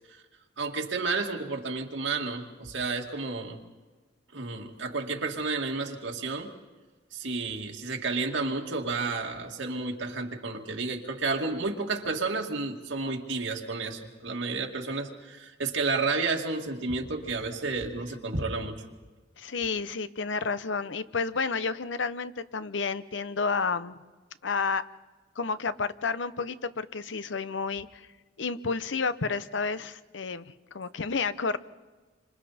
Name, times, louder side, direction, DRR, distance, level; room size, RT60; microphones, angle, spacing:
voice 1, 0.6-3.6 4.3-6.5 7.1-18.8, right 3 dB, 90° right, 1 dB, 2.3 m, -31 dB
voice 2, 19.4-24.0 24.4-24.9 25.4-28.1 28.4-31.6, left 4 dB, 75° left, 14 dB, 0.8 m, -31 dB
28.0 x 26.0 x 4.3 m, 1.3 s
head